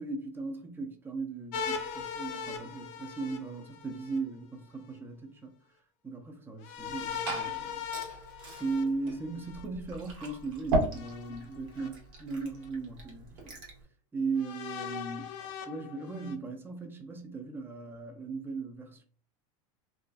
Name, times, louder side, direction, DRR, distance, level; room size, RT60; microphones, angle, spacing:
voice 1, 0.0-5.6 6.0-7.8 8.1-8.2 8.5-13.6 14.1-15.3 15.7-19.0, right 3 dB, 15° right, 0.4 m, -37 dB
sound 1, 1.5-4.2 6.6-9.6 10.9-11.9 12.6-12.7 14.4-16.4, left 7 dB, 55° left, 0.5 m, -39 dB
Glass / Fill (with liquid), 6.8-13.8, right 2 dB, 70° right, 1.1 m, -37 dB
2.4 x 2.3 x 2.3 m
supercardioid pair, 120°, 17 cm